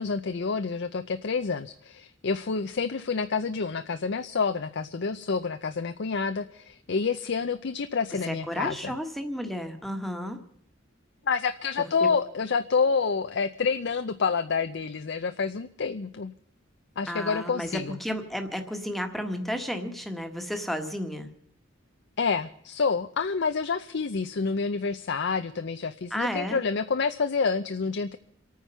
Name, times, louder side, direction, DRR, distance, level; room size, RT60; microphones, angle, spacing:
voice 1, 0.0-9.0 11.3-16.3 17.0-18.0 22.2-28.2, left 5 dB, 60° left, 10 dB, 0.6 m, -28 dB
voice 2, 8.3-10.4 12.0-12.1 17.1-21.3 26.1-26.6, equal, ahead, 6 dB, 1.4 m, -32 dB
27.5 x 9.4 x 5.6 m, 0.68 s
head